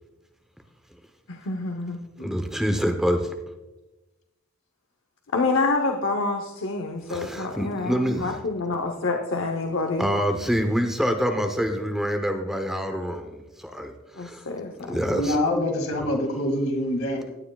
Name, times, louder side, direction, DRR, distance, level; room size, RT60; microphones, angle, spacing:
voice 1, 1.3-2.0 5.3-10.1 14.2-15.2, left 3 dB, 65° left, 4 dB, 0.8 m, -27 dB
voice 2, 2.2-3.3 7.1-8.4 10.0-14.5 14.8-15.4, equal, ahead, 5 dB, 0.8 m, -26 dB
voice 3, 15.2-17.3, left 1 dB, 85° left, 2 dB, 2.2 m, -25 dB
16.5 x 9.5 x 2.3 m, 1.1 s
head